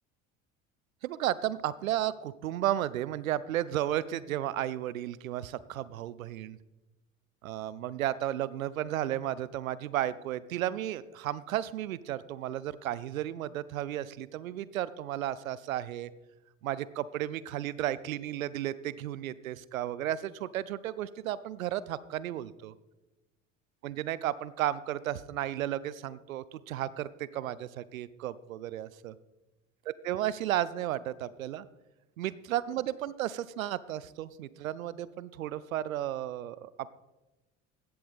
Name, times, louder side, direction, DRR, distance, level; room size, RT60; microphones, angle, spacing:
voice 1, 1.0-6.6 7.4-16.1 16.6-22.7 23.8-29.1 30.0-31.7 32.2-36.9, right 12 dB, 80° right, 19 dB, 0.6 m, -33 dB
16.0 x 11.5 x 3.5 m, 1.1 s
figure-of-eight pair, 60°, 40 cm